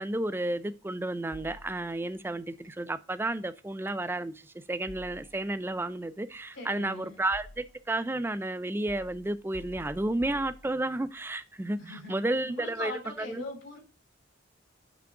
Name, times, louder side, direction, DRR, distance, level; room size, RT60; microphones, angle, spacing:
voice 1, 0.0-12.9 13.2-13.4, right 2 dB, 10° right, 0.3 m, -32 dB
sound 1, 1.3-2.2 4.9-5.7 6.6-8.0 8.9-11.1, left 1 dB, 40° left, 0.5 m, -50 dB
voice 2, 6.5-7.2 11.8-13.8, left 2 dB, 70° left, 2.7 m, -41 dB
5.9 x 3.5 x 4.7 m
head